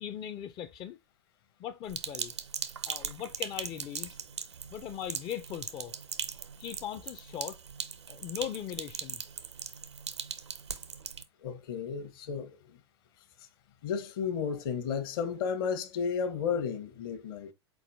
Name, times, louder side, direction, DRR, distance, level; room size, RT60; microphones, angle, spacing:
voice 1, 0.0-1.0 1.6-2.3 2.9-4.2 4.7-5.9 6.6-7.6 8.1-9.2, left 10 dB, 30° left, 0.5 m, -39 dB
Sink (filling or washing), 1.9-11.2, right 7 dB, 80° right, 0.7 m, -40 dB
voice 2, 11.4-12.6 13.8-17.5, left 6 dB, 55° left, 1.0 m, -33 dB
4.5 x 4.3 x 2.6 m
figure-of-eight pair, 95°, 14 cm